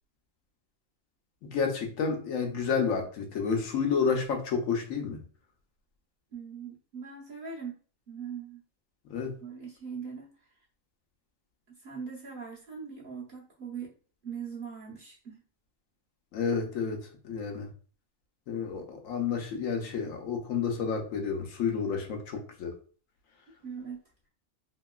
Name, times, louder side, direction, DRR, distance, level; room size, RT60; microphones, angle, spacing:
voice 1, 1.4-5.2 9.1-9.3 16.3-17.7 18.5-22.7, left 6 dB, 75° left, 3 dB, 1.0 m, -30 dB
voice 2, 6.3-7.7 8.1-8.6 9.4-10.3 11.8-13.9 14.2-15.4 23.6-24.0, right 6 dB, 45° right, -4 dB, 0.9 m, -40 dB
2.9 x 2.8 x 2.3 m, 0.40 s
omnidirectional pair, 1.4 m